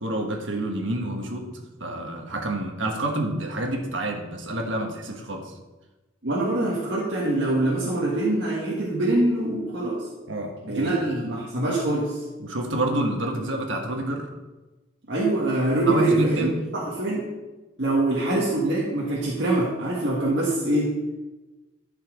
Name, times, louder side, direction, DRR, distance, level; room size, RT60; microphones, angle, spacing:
voice 1, 0.0-1.4 1.8-5.5 10.3-11.0 12.4-14.3 15.8-16.6, right 1 dB, 90° right, 2 dB, 1.5 m, -28 dB
voice 2, 6.2-10.1 10.7-12.2 15.1-16.5 16.7-17.3 17.8-21.0, right 2 dB, 65° right, -5 dB, 1.7 m, -24 dB
12.5 x 5.8 x 3.8 m, 1.1 s
head